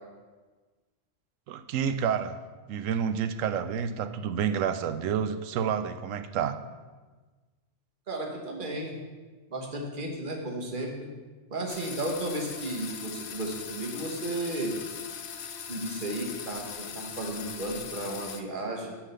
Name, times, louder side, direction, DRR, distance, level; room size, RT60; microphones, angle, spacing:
voice 1, 1.5-2.4 2.7-6.6, right 7 dB, 85° right, 10 dB, 1.0 m, -29 dB
voice 2, 8.1-9.0 9.5-11.1 11.5-14.7 15.7-18.9, right 1 dB, 40° right, 0 dB, 1.4 m, -34 dB
sound 1, 11.7-18.4, left 7 dB, 60° left, 0.9 m, -40 dB
10.0 x 3.7 x 6.7 m, 1.3 s
omnidirectional pair, 1.3 m